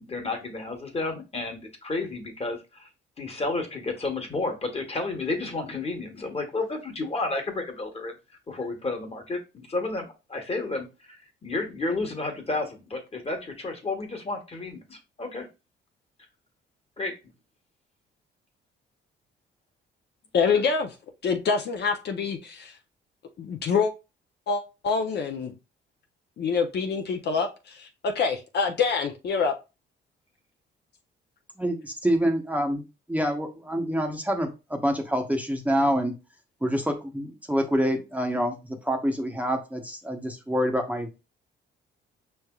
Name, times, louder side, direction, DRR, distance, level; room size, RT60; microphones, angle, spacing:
voice 1, 0.0-2.9 3.2-8.1 8.5-15.5 17.0-17.2 20.4-20.6, left 3 dB, 30° left, 4 dB, 1.3 m, -31 dB
voice 2, 20.3-20.9 21.2-22.7 23.4-23.9 24.5-25.5 26.4-29.5, left 5 dB, 55° left, 5 dB, 0.7 m, -26 dB
voice 3, 31.6-36.2 36.6-41.2, equal, 5° right, 3 dB, 0.8 m, -27 dB
5.5 x 3.3 x 2.3 m, 0.28 s
cardioid pair, 90°, 20 cm